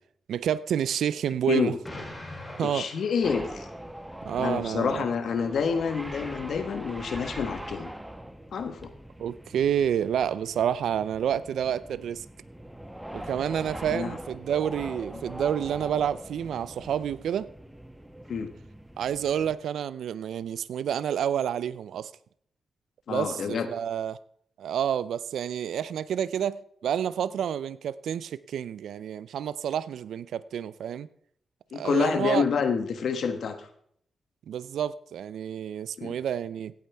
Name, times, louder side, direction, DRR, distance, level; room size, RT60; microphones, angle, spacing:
voice 1, 0.3-1.7 2.6-2.9 4.2-5.1 9.2-12.2 13.1-17.5 19.0-22.1 23.1-24.2 24.6-31.1 31.7-32.4 34.5-36.7, right 9 dB, 85° right, 0.4 m, -29 dB
Explosion, 1.8-4.0, left 1 dB, 20° left, 3.2 m, -43 dB
voice 2, 2.6-3.7 4.4-7.9 8.5-8.9 13.9-14.2 15.1-15.2 18.3-18.5 23.1-23.7 31.7-33.7 36.0-36.1, left 6 dB, 70° left, 1.3 m, -28 dB
sound 1, 3.2-19.6, right 1 dB, 5° right, 1.1 m, -42 dB
16.5 x 8.5 x 3.4 m
cardioid pair, 80°, 0 cm